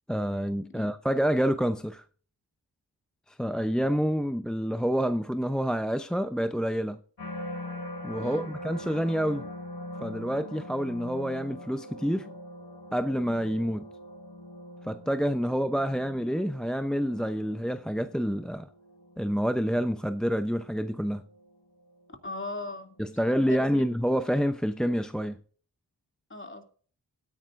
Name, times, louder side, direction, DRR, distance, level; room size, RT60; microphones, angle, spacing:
voice 1, 0.1-2.0 3.3-7.0 8.0-9.5 10.0-12.3 12.9-13.9 14.8-18.7 19.2-21.2 23.0-25.4, equal, ahead, 0.7 m, -28 dB
sound 1, 7.2-22.4 22.9-23.3, left 1 dB, 70° left, 3.0 m, -43 dB
voice 2, 8.2-8.5 22.2-23.7 26.3-26.6, left 2 dB, 30° left, 2.7 m, -39 dB
17.0 x 9.7 x 2.6 m
cardioid pair, 50°, 43 cm